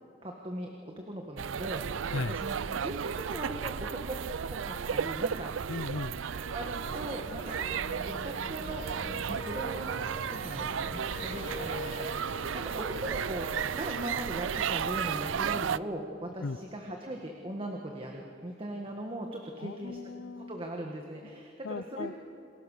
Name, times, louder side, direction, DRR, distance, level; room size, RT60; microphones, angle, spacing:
voice 1, 0.2-4.2 4.5-5.7 6.5-7.6 8.0-8.8 9.3-9.9 10.3-20.0 20.4-22.1, right 1 dB, 30° right, 1 dB, 1.7 m, -39 dB
sound 1, 1.4-15.8, right 7 dB, 80° right, 0.5 m, -34 dB
voice 2, 5.7-6.2 16.4-16.6 19.6-20.6 21.2-21.3 21.6-22.1, left 3 dB, 85° left, 14 dB, 0.6 m, -37 dB
sound 2, 6.2-16.3, left 2 dB, 45° left, 1.8 m, -44 dB
28.0 x 20.5 x 6.6 m, 2.5 s
head